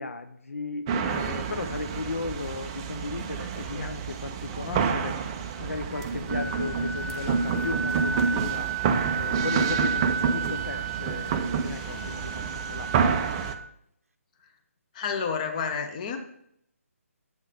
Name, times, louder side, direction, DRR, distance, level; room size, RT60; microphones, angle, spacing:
voice 1, 0.0-5.2 5.6-8.7 9.1-13.1, left 3 dB, 65° left, 8 dB, 0.5 m, -35 dB
sound 1, 0.9-13.5, right 6 dB, 20° right, 0.3 m, -29 dB
Wind instrument woodwind instrument, 5.9-13.7, right 5 dB, 70° right, 0.6 m, -33 dB
voice 2, 14.9-16.2, left 6 dB, 30° left, 6 dB, 0.7 m, -29 dB
7.7 x 3.7 x 5.2 m, 0.70 s
figure-of-eight pair, 145°, 8 cm